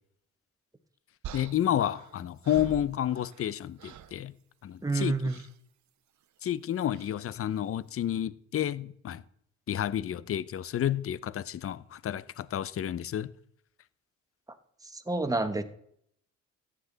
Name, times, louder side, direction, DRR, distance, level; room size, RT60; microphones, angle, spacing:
sound 1, 1.2-3.5 3.8-4.2 5.2-5.6 6.9-7.2, right 9 dB, 70° right, 1.0 m, -45 dB
voice 1, 1.3-4.3 4.6-5.2 6.4-9.2 9.7-13.3, left 11 dB, 50° left, 0.7 m, -30 dB
voice 2, 4.8-5.4 14.8-15.6, right 3 dB, 10° right, 1.3 m, -29 dB
14.5 x 9.9 x 4.0 m
cardioid pair, 90°, 30 cm